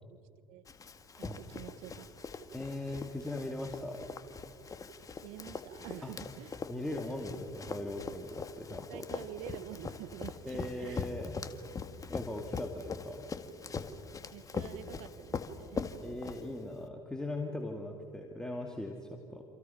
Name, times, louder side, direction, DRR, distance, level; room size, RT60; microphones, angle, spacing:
Run, 0.7-16.8, left 4 dB, 30° left, 1.8 m, -42 dB
voice 1, 1.2-2.1 5.2-6.6 8.9-11.1 14.3-15.9, right 14 dB, 65° right, 15 dB, 0.9 m, -47 dB
voice 2, 2.5-4.0 6.0-6.1 6.7-9.0 10.4-11.4 12.1-13.3 16.0-19.4, left 1 dB, 5° left, 1 dB, 2.4 m, -39 dB
28.0 x 27.5 x 5.8 m, 2.4 s
hypercardioid pair, 70°, 12 cm